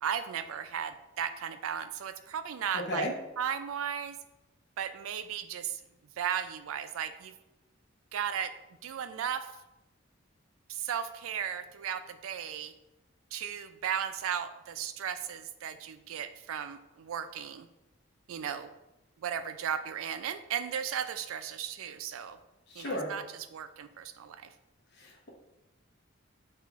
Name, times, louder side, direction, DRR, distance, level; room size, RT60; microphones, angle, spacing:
voice 1, 0.0-3.1 3.4-4.2 4.8-5.8 6.2-7.3 8.1-8.5 8.8-9.5 10.7-12.7 13.3-17.7 18.3-18.7 19.2-22.4 22.8-24.5, right 8 dB, 85° right, 10 dB, 0.4 m, -35 dB
voice 2, 2.7-3.1 22.7-23.1 25.0-25.3, equal, 55° left, -1 dB, 0.8 m, -34 dB
5.5 x 2.5 x 3.5 m, 0.97 s
head